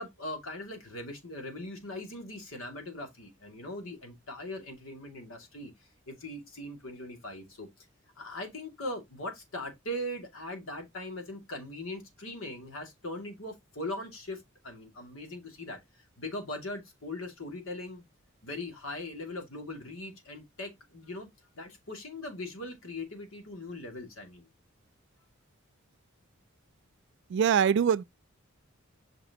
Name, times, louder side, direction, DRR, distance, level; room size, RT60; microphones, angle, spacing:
voice 1, 0.0-5.7 6.1-7.7 8.2-18.0 18.4-21.3 21.6-24.5, left 1 dB, 90° left, 2.5 m, -40 dB
voice 2, 27.3-28.0, right 7 dB, 60° right, 0.3 m, -23 dB
6.0 x 5.9 x 2.9 m
head